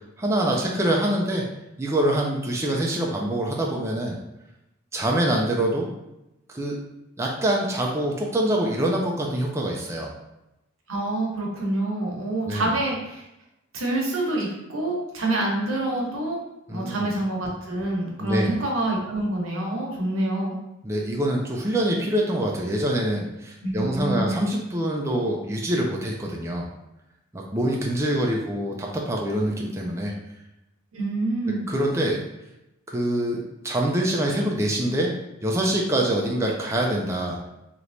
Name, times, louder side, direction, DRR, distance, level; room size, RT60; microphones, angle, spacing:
voice 1, 0.2-1.5 1.8-4.2 4.9-5.9 6.5-6.8 7.2-10.1 12.5-12.7 16.7-17.1 18.2-18.5 20.8-26.7 27.3-30.1 31.7-32.2 32.9-35.1 35.4-37.4, right 1 dB, 15° right, -1 dB, 0.4 m, -25 dB
voice 2, 10.9-13.2 13.7-16.4 16.7-20.6 23.6-24.4 30.9-31.7, right 2 dB, 90° right, -2 dB, 0.9 m, -27 dB
3.2 x 2.9 x 2.6 m, 0.90 s
head